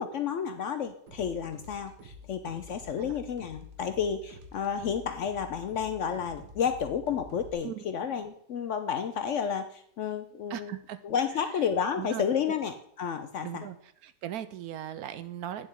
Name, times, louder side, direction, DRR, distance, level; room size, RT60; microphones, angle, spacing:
voice 1, 0.0-10.7 11.0-13.7, left 7 dB, 65° left, 9 dB, 0.8 m, -31 dB
sound 1, 1.1-7.5, left 2 dB, 90° right, 2.0 m, -49 dB
voice 2, 10.5-11.0 12.0-12.6 13.4-13.8 14.0-15.7, right 11 dB, 70° right, 13 dB, 1.0 m, -38 dB
9.1 x 7.4 x 3.6 m, 0.69 s
omnidirectional pair, 1.7 m